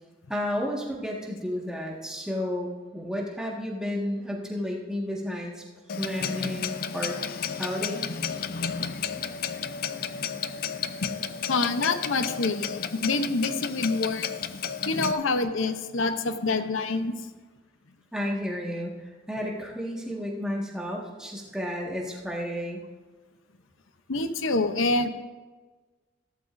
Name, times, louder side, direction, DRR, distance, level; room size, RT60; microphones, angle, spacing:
voice 1, 0.3-5.6 5.9-7.1 7.6-8.1 18.1-18.9 19.3-22.8, equal, 5° right, -3 dB, 1.7 m, -32 dB
Clock, 5.9-15.1, left 7 dB, 45° left, 0.4 m, -32 dB
voice 2, 11.5-14.3 14.9-17.1 24.1-25.1, left 3 dB, 80° left, 9 dB, 0.8 m, -26 dB
15.0 x 13.0 x 2.6 m, 1.3 s
head